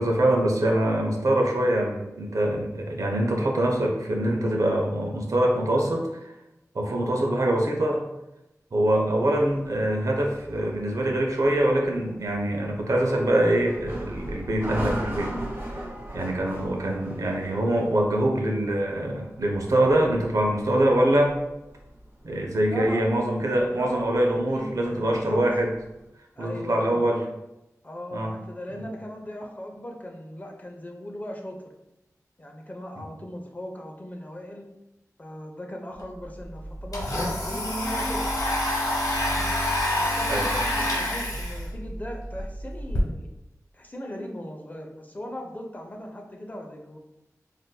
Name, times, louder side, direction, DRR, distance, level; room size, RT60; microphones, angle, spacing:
voice 1, 0.0-6.3 6.7-8.1 8.7-15.4 15.7-15.9 16.1-21.3 22.2-25.7 26.4-27.2 28.1-28.3 28.7-28.8 40.3-40.5, right 1 dB, 70° right, 0 dB, 0.6 m, -24 dB
sound 1, 9.2-26.1, right 1 dB, 45° right, 1.1 m, -39 dB
voice 2, 22.7-23.0 23.7-25.4 26.4-27.0 27.8-31.7 32.4-34.7 35.2-38.3 39.2-39.6 40.0-43.3 43.7-47.0, left 1 dB, 30° left, 1 dB, 0.5 m, -38 dB
Domestic sounds home sounds, 36.0-36.1 36.4-43.0, left 1 dB, 80° left, 0.9 m, -27 dB
3.7 x 2.5 x 2.2 m, 0.94 s
wide cardioid pair, 65°, 6 cm